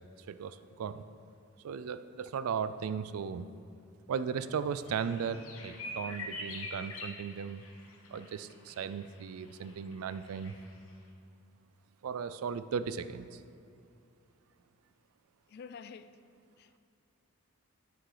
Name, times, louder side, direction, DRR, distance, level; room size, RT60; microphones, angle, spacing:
voice 1, 0.3-1.1 1.6-3.5 4.1-7.6 8.1-10.6 12.0-13.4, right 6 dB, 80° right, 0.4 m, -36 dB
sound 1, 4.8-10.7, left 2 dB, 70° left, 1.0 m, -44 dB
voice 2, 15.5-16.2 16.6-16.8, left 6 dB, 45° left, 0.3 m, -48 dB
9.3 x 6.1 x 4.8 m
head